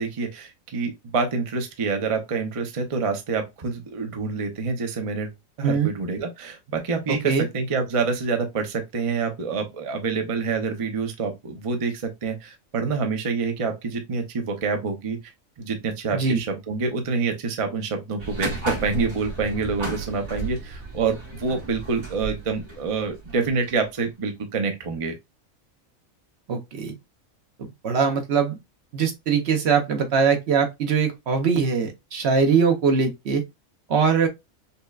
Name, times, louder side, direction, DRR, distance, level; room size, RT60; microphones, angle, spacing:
voice 1, 0.0-5.3 5.6-15.2 15.6-25.1, right 4 dB, 40° right, 0.5 m, -27 dB
voice 2, 7.1-7.5 16.1-16.4 26.5-26.9 27.8-28.6 28.9-33.4 33.9-34.3, right 5 dB, 60° right, 0.8 m, -22 dB
sound 1, 18.2-24.0, right 2 dB, 85° right, 2.2 m, -34 dB
5.4 x 2.1 x 2.3 m
omnidirectional pair, 1.4 m